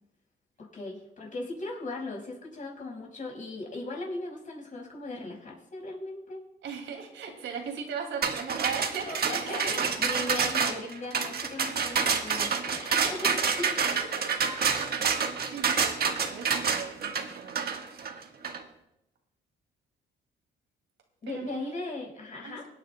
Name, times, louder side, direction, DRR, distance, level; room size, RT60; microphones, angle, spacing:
voice 1, 0.6-6.4 9.1-13.8 21.2-22.7, left 2 dB, 40° left, -1 dB, 4.9 m, -38 dB
voice 2, 6.6-9.8 13.5-13.7 14.0-14.4 15.0-18.0 21.3-21.7 22.4-22.6, right 6 dB, 75° right, 3 dB, 2.3 m, -38 dB
sound 1, 8.2-18.6, right 6 dB, 50° right, 1.4 m, -28 dB
24.0 x 9.3 x 2.2 m, 0.83 s
cardioid pair, 90°, 20 cm